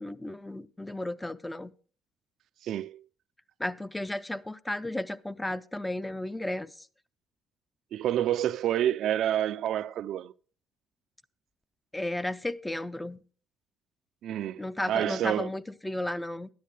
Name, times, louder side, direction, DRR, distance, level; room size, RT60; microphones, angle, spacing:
voice 1, 0.0-1.7 3.6-6.9 11.9-13.2 14.6-16.5, left 1 dB, 10° left, 0.5 m, -34 dB
voice 2, 2.6-3.0 7.9-10.3 14.2-15.5, right 11 dB, 70° right, 0.4 m, -28 dB
13.0 x 10.0 x 3.2 m
cardioid pair, 110°, 0 cm